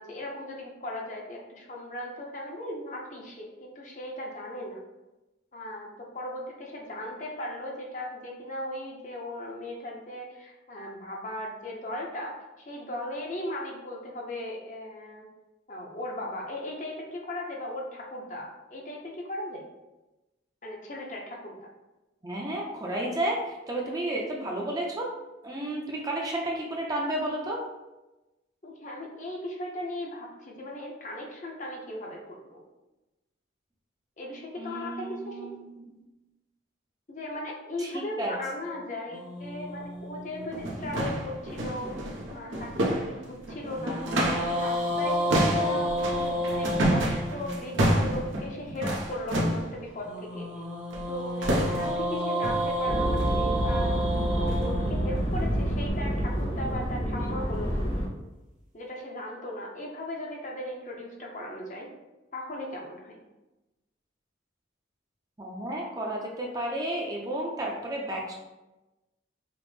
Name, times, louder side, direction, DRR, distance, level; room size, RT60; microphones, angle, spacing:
voice 1, 0.0-4.8 5.5-15.3 15.7-19.6 20.6-21.7 28.6-32.6 34.2-35.5 37.1-44.0 44.5-50.5 51.1-57.8 58.7-61.9 62.3-63.2, left 1 dB, 40° left, -1 dB, 0.6 m, -37 dB
voice 2, 22.2-25.1 25.4-27.6 34.6-35.8 37.8-38.3 38.7-38.8 65.4-68.4, right 1 dB, 20° right, -2 dB, 0.5 m, -32 dB
sound 1, 39.1-41.5 43.8-47.9 50.1-56.3, equal, 40° right, 0.9 m, -31 dB
sound 2, 39.8-39.9 40.4-44.6 44.9-49.7 50.9-51.1 51.4-52.1 52.4-52.7 53.2-53.4 53.7-53.9 54.4-54.6 55.2-55.3 55.9-56.0, right 1 dB, 90° right, 0.7 m, -29 dB
sound 3, 52.8-58.1, right 1 dB, 85° left, 1.2 m, -28 dB
5.0 x 2.0 x 3.2 m, 1.0 s
head